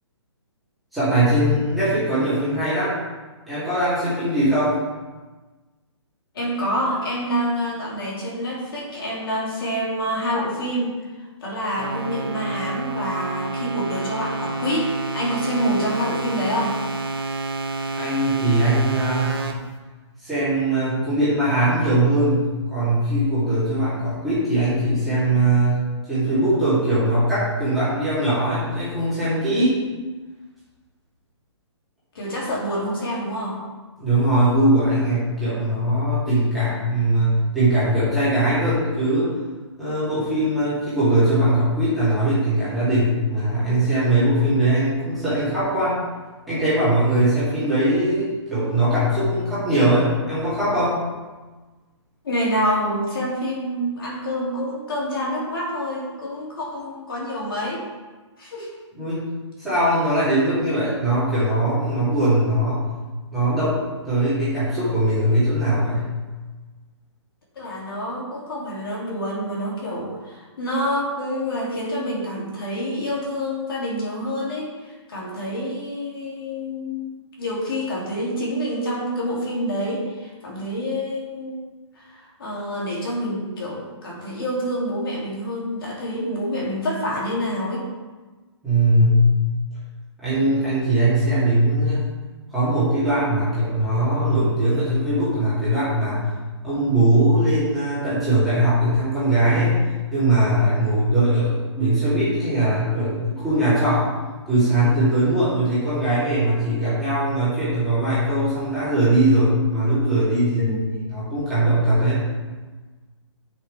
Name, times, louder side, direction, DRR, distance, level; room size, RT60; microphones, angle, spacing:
voice 1, 0.9-2.9 3.5-4.8 18.0-19.4 20.2-25.8 26.1-29.8 34.0-39.3 39.8-46.0 46.5-51.0 58.9-59.2 59.6-62.9 63.3-66.1 88.6-89.3 90.2-92.0 92.5-96.2 96.6-99.7 100.1-104.1 104.5-110.7 111.1-112.2, right 1 dB, ahead, -16 dB, 2.8 m, -20 dB
voice 2, 6.3-11.0 11.4-16.8 32.1-33.6 52.2-57.8 58.4-58.7 67.6-77.1 77.4-81.6 81.9-87.9 100.8-101.0 110.6-110.8, equal, 50° left, -4 dB, 2.8 m, -27 dB
sound 1, 11.8-19.5, right 3 dB, 50° right, 1.3 m, -29 dB
12.5 x 6.2 x 3.4 m, 1.3 s
hypercardioid pair, 180°, 16 cm